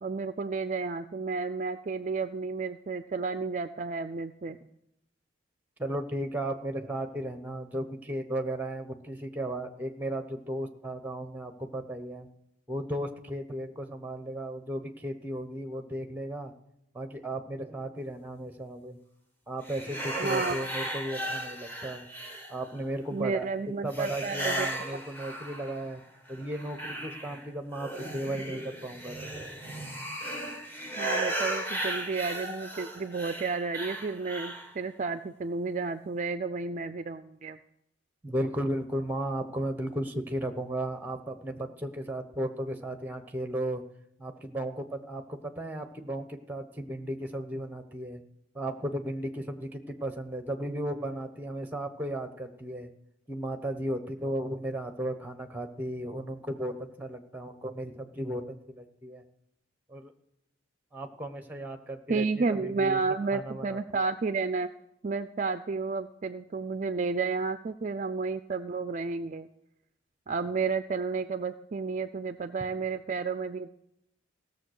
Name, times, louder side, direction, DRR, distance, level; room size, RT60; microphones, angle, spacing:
voice 1, 0.0-4.6 20.2-20.6 23.1-25.0 31.0-37.6 62.1-64.7 65.0-69.5 70.3-73.7, right 4 dB, 40° right, 11 dB, 0.4 m, -31 dB
voice 2, 5.8-12.3 12.7-16.5 16.9-19.0 19.5-22.1 22.5-23.5 23.8-26.0 26.3-29.3 38.2-43.8 44.2-48.2 48.5-52.9 53.3-59.2 59.9-60.1 60.9-64.0, right 1 dB, 10° right, 8 dB, 1.0 m, -35 dB
sound 1, 19.6-22.8 23.9-25.9 26.3-34.7, right 1 dB, 10° left, 1.7 m, -36 dB
16.5 x 6.9 x 6.4 m, 0.80 s
head